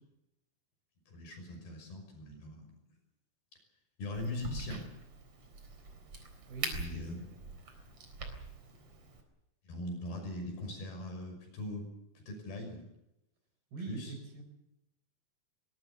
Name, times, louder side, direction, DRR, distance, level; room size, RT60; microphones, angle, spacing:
voice 1, 1.1-2.7 4.0-4.9 6.7-7.2 9.6-11.9 12.1-12.9 13.9-14.1, left 1 dB, 60° left, 4 dB, 7.9 m, -41 dB
Crack, 4.1-9.2, right 3 dB, 35° right, 4.6 m, -43 dB
voice 2, 6.5-7.4 13.7-14.4, right 3 dB, 60° right, 7 dB, 6.1 m, -45 dB
22.0 x 21.5 x 7.0 m, 0.89 s
omnidirectional pair, 5.1 m